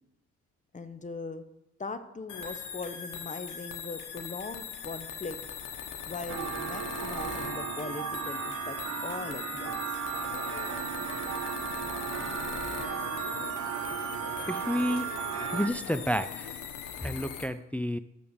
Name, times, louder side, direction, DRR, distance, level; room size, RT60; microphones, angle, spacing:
voice 1, 0.7-1.4 1.8-5.4 6.1-8.8 9.0-9.8, left 4 dB, 25° left, 9 dB, 0.9 m, -40 dB
sound 1, 2.3-17.5, left 7 dB, 85° left, 1.3 m, -40 dB
sound 2, 6.3-15.7, right 9 dB, 55° right, 0.7 m, -35 dB
sound 3, 10.1-17.3, left 11 dB, 65° left, 0.7 m, -46 dB
voice 2, 14.5-15.1 15.5-16.5 17.0-18.0, equal, 5° left, 12 dB, 0.4 m, -30 dB
7.0 x 6.8 x 7.9 m, 0.87 s
cardioid pair, 90°, 30 cm